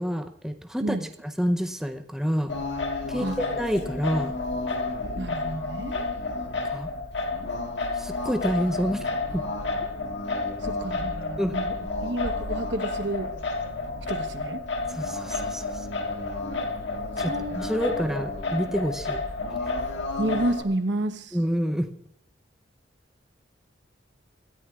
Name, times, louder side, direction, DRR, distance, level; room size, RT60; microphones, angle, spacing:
voice 1, 0.0-2.5 3.1-4.4 6.6-6.9 8.0-9.1 9.3-9.4 11.4-11.6 14.9-15.9 17.2-19.2 21.3-21.9, equal, 5° right, 5 dB, 0.6 m, -28 dB
Singing, 2.5-20.6, left 3 dB, 75° left, 1.7 m, -31 dB
voice 2, 5.2-6.0 10.6-11.7 12.0-13.3 14.1-14.6 17.2-18.0 20.2-21.4, right 1 dB, 70° right, 8 dB, 1.1 m, -30 dB
26.0 x 13.5 x 2.4 m, 0.75 s
head